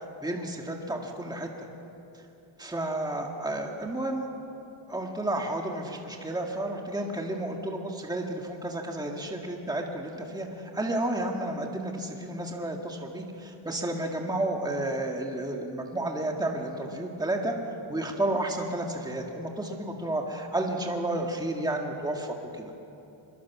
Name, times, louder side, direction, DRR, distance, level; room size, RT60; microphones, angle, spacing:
voice 1, 0.2-1.5 2.6-4.3 4.9-17.5 17.9-22.7, right 1 dB, 10° right, 1 dB, 2.0 m, -31 dB
25.0 x 22.5 x 6.1 m, 2.8 s
cardioid pair, 140°, 47 cm